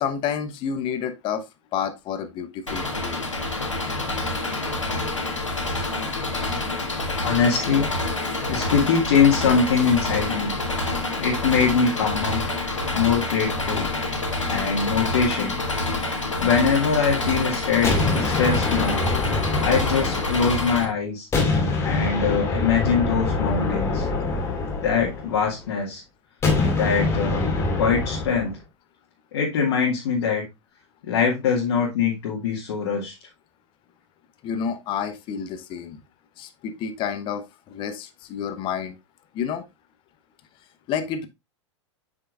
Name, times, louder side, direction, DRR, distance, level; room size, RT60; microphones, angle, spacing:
voice 1, 0.0-1.4 1.7-3.2 34.4-36.0 36.4-39.0 39.3-39.6 40.9-41.3, left 7 dB, 35° left, 1.0 m, -29 dB
Engine, 2.7-20.9, left 2 dB, 85° left, 1.6 m, -27 dB
voice 2, 7.2-7.9 8.5-10.5 11.2-12.5 12.9-13.9 14.5-15.5 16.1-19.0 19.6-21.3 21.8-24.1 24.8-26.0 26.8-27.4 27.8-28.6 29.3-30.4 31.0-33.1, left 6 dB, 55° left, 1.8 m, -23 dB
sound 1, 17.8-20.9 21.3-25.6 26.4-28.5, left 3 dB, 15° left, 2.2 m, -25 dB
7.9 x 5.8 x 2.4 m
figure-of-eight pair, 95°, 16 cm